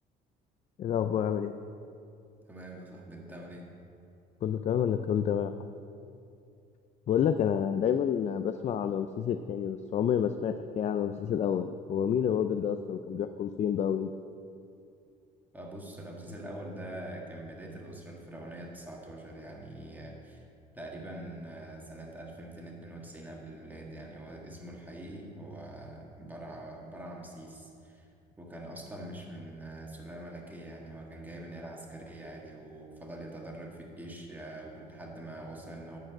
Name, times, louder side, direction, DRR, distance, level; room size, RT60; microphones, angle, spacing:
voice 1, 0.8-1.5 4.4-5.7 7.1-14.1, left 8 dB, 40° left, 9 dB, 0.4 m, -29 dB
voice 2, 2.5-3.7 15.5-20.4 20.7-28.1 28.4-36.0, right 1 dB, 10° right, -2 dB, 1.7 m, -44 dB
10.5 x 4.7 x 7.6 m, 2.5 s
cardioid pair, 110°, 17 cm